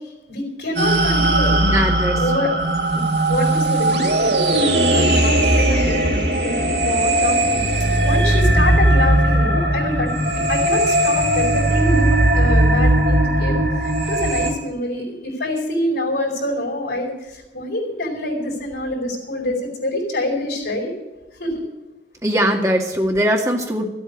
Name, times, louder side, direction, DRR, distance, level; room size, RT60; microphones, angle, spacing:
voice 1, 0.3-1.7 2.1-2.6 3.3-7.6 8.0-20.9 21.4-21.6, left 1 dB, 70° left, -2 dB, 4.8 m, -26 dB
sound 1, 0.8-14.5, right 1 dB, 70° right, 3.2 m, -18 dB
voice 2, 1.6-2.2 3.0-3.1 22.2-23.8, equal, 15° right, 0 dB, 2.0 m, -20 dB
13.5 x 8.4 x 8.4 m, 1.1 s
head